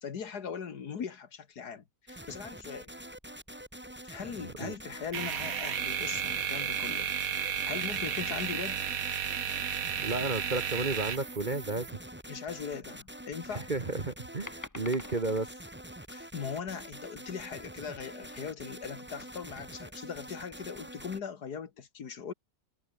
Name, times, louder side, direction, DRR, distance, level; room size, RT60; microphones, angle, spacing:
voice 1, 0.0-2.9 4.0-8.9 12.3-13.7 16.1-22.3, left 6 dB, 65° left, 2.1 m, -40 dB
sound 1, 2.1-21.2, right 1 dB, 5° right, 2.7 m, -46 dB
voice 2, 4.4-4.7 10.0-11.9 13.5-15.5, right 2 dB, 30° right, 1.4 m, -32 dB
sound 2, 5.1-11.9, right 8 dB, 55° right, 1.5 m, -33 dB
sound 3, 14.5-15.4 18.7-19.7, left 2 dB, 10° left, 1.1 m, -47 dB
omnidirectional pair, 1.9 m